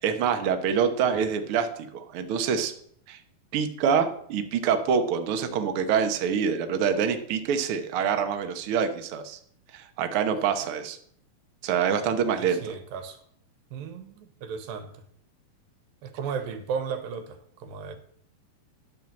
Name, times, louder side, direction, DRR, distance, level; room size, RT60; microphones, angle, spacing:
voice 1, 0.0-1.7 1.9-2.7 3.1-3.2 3.5-9.4 9.7-11.0 11.6-12.7, right 7 dB, 65° right, 7 dB, 1.4 m, -26 dB
voice 2, 12.4-13.2 13.7-14.9 16.0-18.0, right 6 dB, 90° right, 9 dB, 2.9 m, -35 dB
11.0 x 6.0 x 7.6 m, 0.63 s
omnidirectional pair, 4.0 m